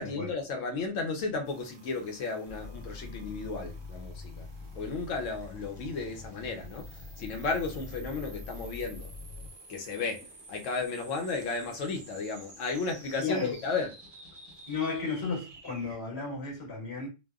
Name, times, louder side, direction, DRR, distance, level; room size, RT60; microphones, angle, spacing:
voice 1, 0.0-4.5 4.7-9.1 9.7-13.9, left 4 dB, 75° left, 1.0 m, -34 dB
sound 1, 1.4-16.0, right 2 dB, 40° right, 0.4 m, -52 dB
sound 2, 2.5-9.5, left 3 dB, 40° left, 0.5 m, -44 dB
voice 2, 13.2-13.5 14.7-17.1, left 5 dB, 55° left, 1.5 m, -33 dB
3.0 x 2.1 x 2.3 m
omnidirectional pair, 1.4 m